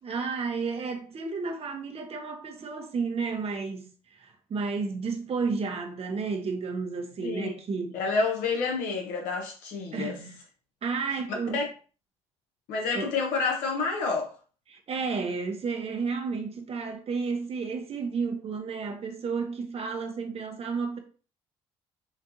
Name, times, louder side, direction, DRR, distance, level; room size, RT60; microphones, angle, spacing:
voice 1, 0.0-8.0 9.9-10.4 10.8-11.6 12.9-13.1 14.7-21.0, right 4 dB, 45° right, 0.9 m, -32 dB
voice 2, 7.2-10.2 11.5-11.6 12.7-14.3, left 4 dB, 80° left, 1.2 m, -29 dB
5.0 x 2.4 x 2.8 m
hypercardioid pair, 60°, 14 cm